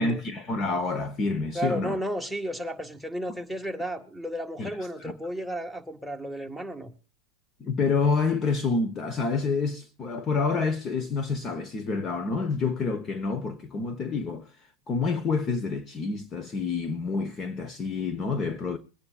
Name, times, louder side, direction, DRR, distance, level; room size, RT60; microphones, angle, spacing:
voice 1, 0.0-2.0 4.6-4.7 5.0-5.1 7.6-14.5 14.9-18.8, left 4 dB, 30° left, 1.1 m, -28 dB
voice 2, 1.5-6.9, equal, 5° left, 1.9 m, -33 dB
23.5 x 9.6 x 2.4 m
hypercardioid pair, 105°, 0 cm